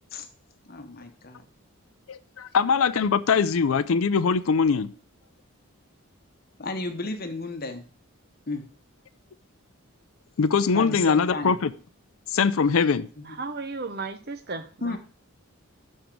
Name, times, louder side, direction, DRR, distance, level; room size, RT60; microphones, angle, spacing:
voice 1, 0.6-1.4 6.6-7.9 8.5-8.6 10.7-11.5 13.2-13.3 14.8-15.0, left 3 dB, 45° left, 6 dB, 1.0 m, -33 dB
voice 2, 2.1-4.9 10.4-11.7 12.3-13.1, left 5 dB, 70° left, 12 dB, 0.5 m, -22 dB
voice 3, 13.2-15.0, right 3 dB, 45° right, 10 dB, 0.8 m, -34 dB
7.0 x 6.4 x 5.9 m, 0.41 s
head